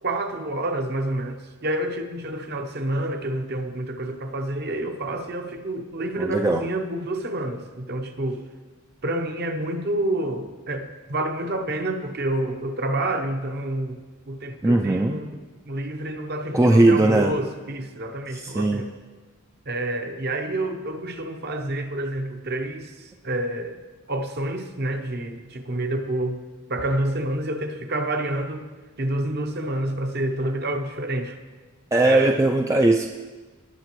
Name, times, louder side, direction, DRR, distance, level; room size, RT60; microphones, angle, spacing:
voice 1, 0.0-8.4 9.0-14.0 14.3-15.4 15.6-18.9 19.7-23.8 24.1-26.4 26.7-28.6 29.0-31.4 32.0-32.4, right 1 dB, 45° right, 6 dB, 0.8 m, -28 dB
voice 2, 6.2-6.6 14.6-15.2 16.5-17.4 18.3-18.8 31.9-33.1, right 2 dB, 15° right, 3 dB, 0.3 m, -19 dB
19.0 x 6.7 x 3.1 m, 1.3 s
head